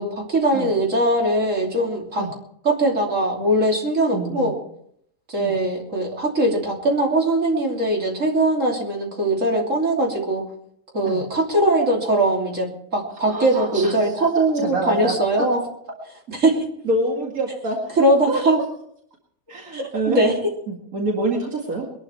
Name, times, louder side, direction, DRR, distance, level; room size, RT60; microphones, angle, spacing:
voice 1, 0.0-2.2 2.7-4.6 5.3-10.4 10.9-12.7 12.9-15.6 16.4-16.6 18.0-18.6 19.7-20.3, right 1 dB, 60° right, -1 dB, 3.6 m, -21 dB
voice 2, 4.1-4.5 5.4-5.6 11.0-11.2 13.3-14.3 14.5-15.1 16.8-18.0 18.3-18.4 19.5-20.2 20.7-21.9, right 2 dB, 80° right, 0 dB, 2.6 m, -26 dB
22.0 x 11.5 x 4.5 m, 0.69 s
omnidirectional pair, 1.5 m